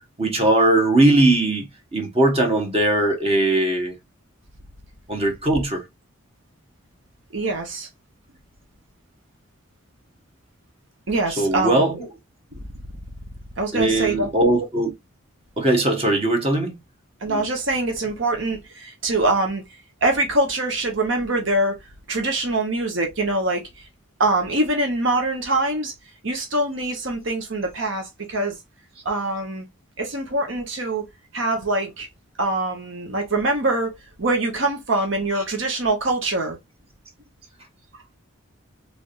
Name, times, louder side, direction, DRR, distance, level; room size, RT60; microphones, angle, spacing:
voice 1, 0.2-1.7 1.9-3.9 5.1-5.8 11.4-12.0 13.7-14.9 15.6-16.8, right 1 dB, 30° right, 1.2 m, -19 dB
voice 2, 7.3-7.9 11.1-12.0 13.6-14.3 17.2-19.6 20.0-21.8 22.1-23.8 24.2-25.9 26.2-28.6 29.0-29.6 30.0-31.1 31.3-32.1 32.4-36.6, right 2 dB, 65° right, 1.1 m, -24 dB
3.5 x 3.3 x 2.5 m
head